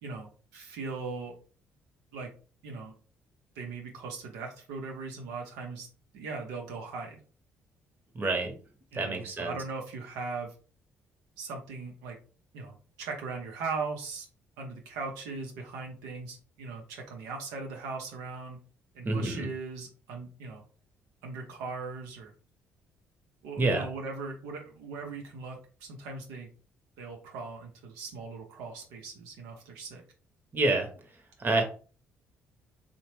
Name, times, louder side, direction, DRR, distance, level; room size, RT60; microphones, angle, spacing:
voice 1, 0.0-1.3 2.1-2.3 2.6-2.9 3.6-5.9 6.1-7.2 8.9-10.5 11.4-12.2 12.5-14.3 14.6-18.6 18.9-20.6 21.2-22.3 23.4-26.5 27.0-30.0, right 4 dB, 90° right, 1 dB, 0.5 m, -39 dB
voice 2, 8.1-8.5 8.9-9.5 19.0-19.5 23.6-23.8 30.5-30.9 31.4-31.6, right 2 dB, 35° right, 4 dB, 0.8 m, -27 dB
2.8 x 2.0 x 3.1 m, 0.38 s
supercardioid pair, 65°, 6 cm